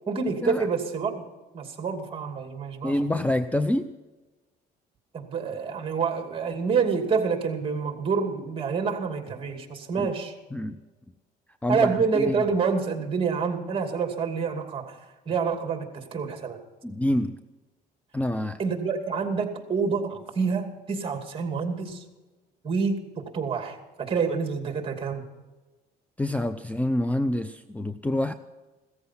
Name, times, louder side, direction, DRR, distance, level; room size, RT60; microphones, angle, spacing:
voice 1, 0.1-1.2 1.5-2.9 5.1-10.3 11.7-14.9 15.3-16.6 18.6-22.0 22.6-25.2, right 5 dB, 30° right, 5 dB, 2.6 m, -27 dB
voice 2, 2.8-3.9 9.9-10.1 10.5-10.8 11.6-12.4 16.8-17.4 18.1-18.6 26.2-28.3, left 1 dB, 10° left, 11 dB, 0.6 m, -27 dB
16.5 x 14.0 x 5.8 m, 1.2 s
cardioid pair, 110°, 17 cm